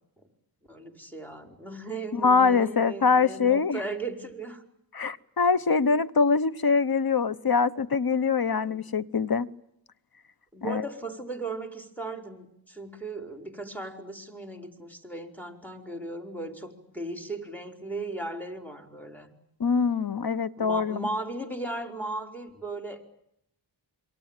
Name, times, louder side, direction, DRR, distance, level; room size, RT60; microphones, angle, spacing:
voice 1, 0.7-4.6 8.6-8.8 10.5-19.3 20.6-23.0, right 2 dB, 5° left, 5 dB, 4.9 m, -37 dB
voice 2, 2.1-3.8 4.9-9.5 10.6-10.8 19.6-21.1, left 5 dB, 55° left, 15 dB, 1.0 m, -24 dB
27.5 x 24.0 x 9.1 m, 0.76 s
wide cardioid pair, 65°, 44 cm